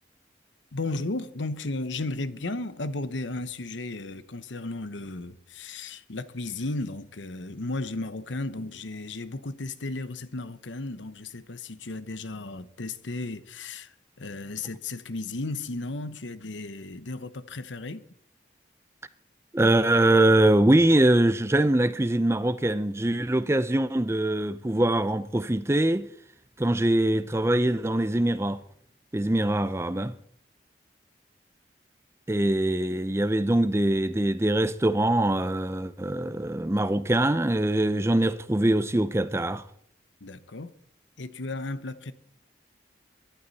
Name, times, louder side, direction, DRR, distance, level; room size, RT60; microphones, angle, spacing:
voice 1, 0.7-18.0 40.2-40.7 41.2-42.1, left 2 dB, 85° left, 1.0 m, -34 dB
voice 2, 19.5-26.1 26.6-28.6 29.1-30.1 32.3-39.6, right 1 dB, 15° right, 0.5 m, -23 dB
23.5 x 11.5 x 4.2 m
head